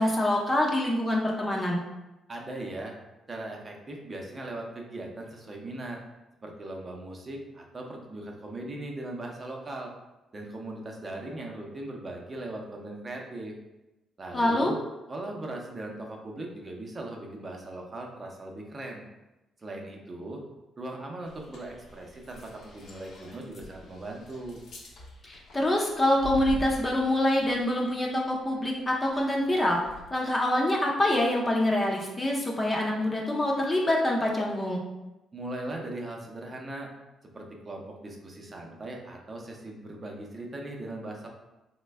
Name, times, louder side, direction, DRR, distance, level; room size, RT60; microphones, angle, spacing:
voice 1, 0.0-1.8 14.3-14.7 25.2-29.8 30.1-34.8, left 1 dB, 25° left, -1 dB, 0.5 m, -25 dB
voice 2, 2.3-2.9 3.3-6.0 6.4-9.9 10.3-13.5 14.2-14.8 15.1-19.0 19.6-20.4 20.8-24.6 35.3-36.9 37.3-41.3, right 2 dB, 30° right, 1 dB, 0.6 m, -39 dB
sound 1, 21.2-30.1, left 2 dB, 70° left, 0.7 m, -45 dB
3.2 x 2.1 x 3.3 m, 1.0 s
cardioid pair, 90°, 0 cm